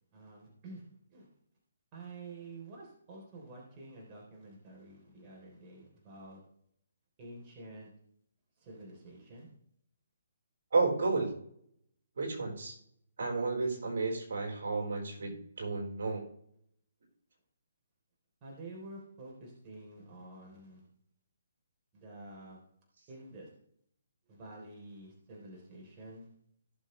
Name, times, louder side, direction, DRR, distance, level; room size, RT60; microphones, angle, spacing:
voice 1, 0.1-1.3 1.9-6.4 7.2-7.9 8.6-9.5 18.4-20.9 21.9-22.6 23.1-23.5 24.3-26.3, right 2 dB, 25° right, -3 dB, 3.6 m, -49 dB
voice 2, 10.7-11.3 12.2-12.8 13.2-16.3, right 3 dB, 70° right, 0 dB, 4.5 m, -32 dB
17.0 x 7.0 x 3.3 m, 0.68 s
hypercardioid pair, 150°, 0 cm